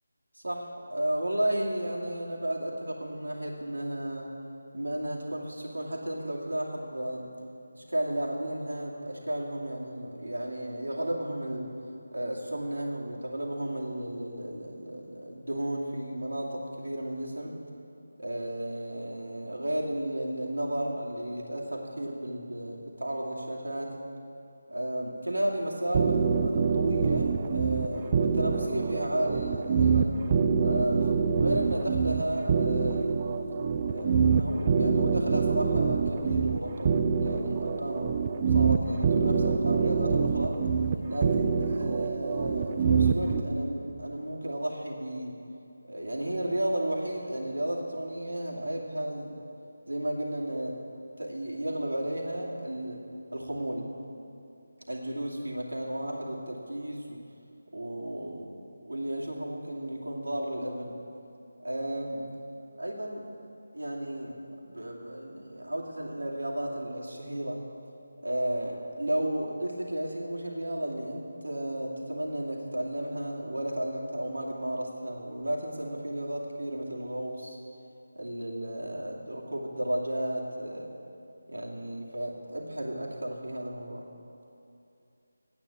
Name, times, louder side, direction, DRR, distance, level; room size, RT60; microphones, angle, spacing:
voice 1, 0.3-4.3 4.7-7.3 7.7-11.7 12.1-17.5 18.2-23.9 24.7-30.2 30.6-33.3 33.8-38.1 38.5-40.5 41.1-45.4 45.9-49.3 49.9-50.8 51.2-53.0 53.3-53.9 54.9-57.2 57.7-61.0 61.6-62.3 62.8-63.3 63.7-64.4 64.6-67.6 68.2-77.6 78.2-80.9 81.5-84.0, right 1 dB, 80° right, -2 dB, 2.4 m, -33 dB
sound 1, 25.9-43.4, right 5 dB, 30° right, 0.5 m, -26 dB
9.9 x 9.1 x 7.2 m, 2.6 s
figure-of-eight pair, 160°, 0 cm